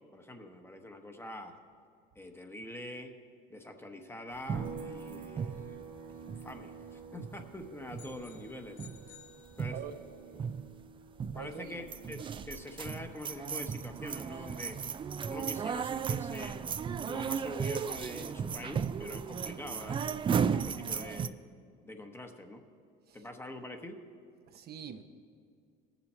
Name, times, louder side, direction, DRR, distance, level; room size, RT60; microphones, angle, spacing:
voice 1, 0.1-1.6 2.1-3.2 3.5-5.8 6.2-8.9 9.6-9.8 11.3-14.8 15.2-16.6 17.1-21.4 21.8-22.6 23.1-24.0, left 1 dB, 10° left, 5 dB, 1.0 m, -45 dB
sound 1, 4.5-6.9 7.2-7.6 7.9-8.5 8.8-9.1 9.5-10.1 10.3-10.8 11.2-11.6 11.9-21.3, right 7 dB, 25° right, 0.3 m, -35 dB
sound 2, 4.5-18.1 18.4-20.6, right 5 dB, 85° right, 1.9 m, -52 dB
sound 3, 8.0-10.1, left 8 dB, 75° left, 1.1 m, -57 dB
voice 2, 11.3-11.7 24.5-25.0, right 8 dB, 50° right, 7 dB, 0.7 m, -43 dB
18.5 x 7.2 x 4.3 m, 2.3 s
supercardioid pair, 100°, 21 cm